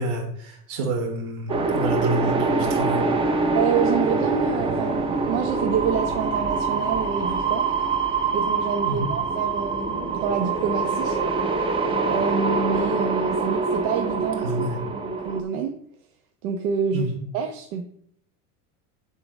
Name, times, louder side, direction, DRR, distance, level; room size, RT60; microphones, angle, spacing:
voice 1, 0.0-3.0 8.9-9.1 14.4-14.8 16.9-17.2, right 1 dB, 65° right, 0 dB, 2.8 m, -28 dB
sound 1, 1.5-15.4, right 4 dB, 15° right, 0.6 m, -24 dB
voice 2, 3.5-7.7 8.3-11.2 12.1-14.5 14.9-15.8 16.4-17.8, right 7 dB, 85° right, 4 dB, 1.1 m, -27 dB
9.7 x 3.9 x 6.4 m, 0.66 s
cardioid pair, 175°, 34 cm